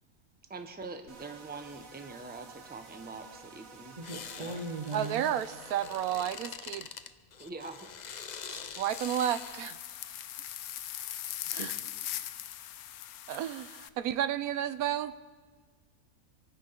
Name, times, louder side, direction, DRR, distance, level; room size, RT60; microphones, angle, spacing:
voice 1, 0.5-4.0 4.4-4.6 7.4-7.8, right 3 dB, 10° right, 6 dB, 0.9 m, -44 dB
sound 1, 1.1-6.6, right 5 dB, 70° right, 1.7 m, -52 dB
sound 2, 4.0-9.6, left 7 dB, 55° left, 0.5 m, -44 dB
voice 2, 4.0-5.3 11.5-11.7, right 2 dB, 30° right, 6 dB, 1.4 m, -38 dB
voice 3, 4.9-6.9 8.5-9.8 11.5-11.7 13.3-15.1, right 10 dB, 85° right, 14 dB, 1.1 m, -32 dB
sound 3, 8.9-13.9, left 12 dB, 85° left, 1.1 m, -40 dB
25.5 x 9.7 x 5.9 m, 1.5 s
omnidirectional pair, 1.5 m